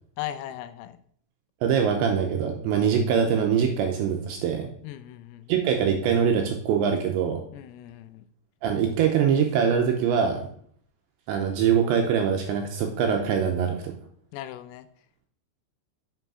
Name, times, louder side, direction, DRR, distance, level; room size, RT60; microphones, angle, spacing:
voice 1, 0.2-1.0 4.8-5.5 7.5-8.2 14.3-14.9, left 13 dB, 85° left, 12 dB, 3.2 m, -38 dB
voice 2, 1.6-4.7 5.5-7.4 8.6-10.4 11.3-13.9, right 7 dB, 80° right, 4 dB, 2.7 m, -23 dB
8.0 x 5.6 x 6.1 m, 0.63 s
omnidirectional pair, 5.9 m